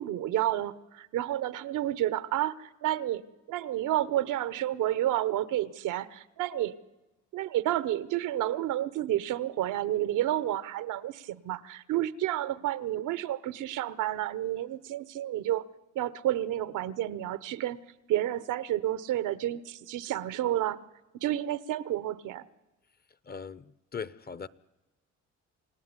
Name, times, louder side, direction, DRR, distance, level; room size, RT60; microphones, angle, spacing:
voice 1, 0.0-3.2 3.5-6.8 7.3-15.6 15.9-17.8 18.1-20.8 21.2-22.5, right 13 dB, 90° right, 17 dB, 1.1 m, -30 dB
voice 2, 23.3-24.5, left 6 dB, 30° left, 19 dB, 0.9 m, -39 dB
28.0 x 17.5 x 9.8 m, 1.1 s
cardioid pair, 90°, 30 cm